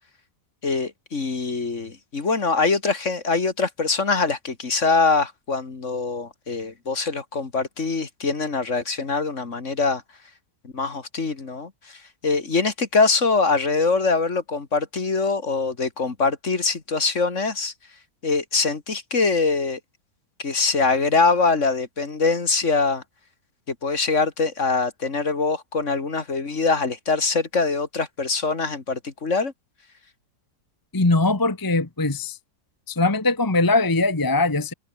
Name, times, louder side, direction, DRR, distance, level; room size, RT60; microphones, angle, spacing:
voice 1, 0.6-10.0 10.7-17.7 18.2-19.8 20.4-23.0 23.8-29.5, left 4 dB, 45° left, 2.5 m, -23 dB
voice 2, 30.9-32.4 32.9-34.7, left 2 dB, 15° left, 1.2 m, -21 dB
omnidirectional pair, 1.7 m